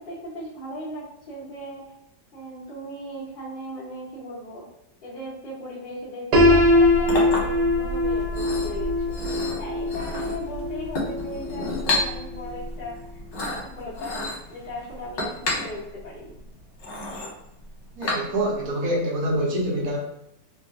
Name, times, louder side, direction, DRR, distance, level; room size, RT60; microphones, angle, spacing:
voice 1, 0.0-1.9 2.3-4.7 5.0-9.2 9.6-13.0 13.3-16.4, equal, 35° left, -8 dB, 1.2 m, -38 dB
Piano, 6.3-12.2, left 1 dB, 80° right, 1.3 m, -22 dB
Chink clink, 6.6-18.7, left 2 dB, 85° left, 1.5 m, -32 dB
voice 2, 18.0-20.0, right 1 dB, 65° right, -1 dB, 1.0 m, -25 dB
3.1 x 2.6 x 2.6 m, 0.82 s
omnidirectional pair, 1.9 m